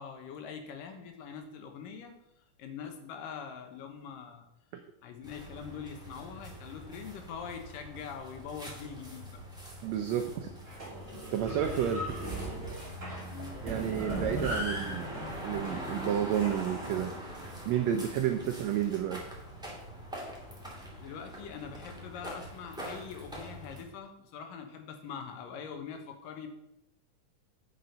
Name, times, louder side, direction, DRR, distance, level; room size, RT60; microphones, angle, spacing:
voice 1, 0.0-2.1 2.6-4.5 5.0-9.4 13.3-13.6 18.4-18.6 21.0-26.5, left 7 dB, 85° left, 5 dB, 2.7 m, -43 dB
sound 1, 5.2-23.8, equal, ahead, 2.0 m, -44 dB
voice 2, 9.8-10.5 11.3-12.1 13.6-15.1 15.4-17.1 17.6-19.3, right 10 dB, 90° right, 6 dB, 1.5 m, -31 dB
sound 2, 10.7-16.9, right 1 dB, 25° right, 2.9 m, -38 dB
8.6 x 6.6 x 5.5 m, 0.84 s
omnidirectional pair, 3.9 m